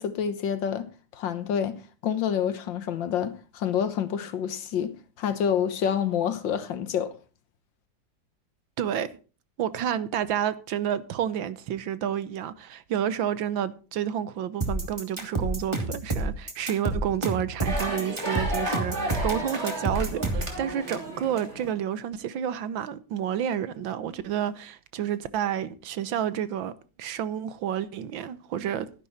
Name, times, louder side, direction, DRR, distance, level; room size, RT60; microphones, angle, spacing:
voice 1, 0.0-7.2, left 8 dB, 75° left, 1.9 m, -28 dB
voice 2, 8.8-9.2 9.6-26.7 27.0-28.9, right 9 dB, 80° right, 1.7 m, -30 dB
sound 1, 14.6-20.6, right 2 dB, 15° right, 2.3 m, -28 dB
sound 2, 17.6-21.7, right 1 dB, 35° right, 3.1 m, -33 dB
12.5 x 11.0 x 4.2 m
omnidirectional pair, 2.1 m